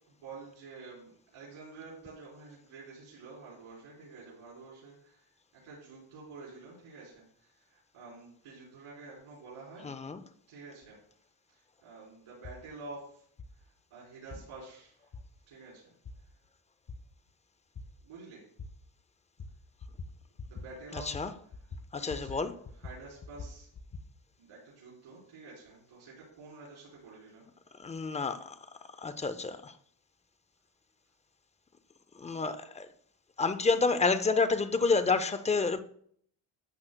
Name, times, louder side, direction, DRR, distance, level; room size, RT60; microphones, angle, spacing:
voice 1, 0.1-9.9 10.5-11.0 11.5-13.3 13.6-15.1 15.5-15.9 16.2-16.3 18.0-18.4 20.4-23.7 24.4-27.5, right 3 dB, 85° right, 3.7 m, -49 dB
voice 2, 9.8-10.2 20.9-21.3 21.9-22.5 27.8-28.5 29.0-29.7 32.2-32.9 33.4-35.8, left 4 dB, 15° left, 0.4 m, -29 dB
sound 1, 12.4-12.6 13.4-13.5 14.3-14.4 15.1-15.2 16.1-16.2 16.9-17.0 17.8-17.9 18.6-18.7 19.4-19.5 19.8-20.1 20.4-20.7 20.9-21.2 21.5-22.4 22.7-24.1, left 3 dB, 35° left, 0.9 m, -43 dB
12.0 x 7.7 x 2.2 m
cardioid pair, 125°, 48 cm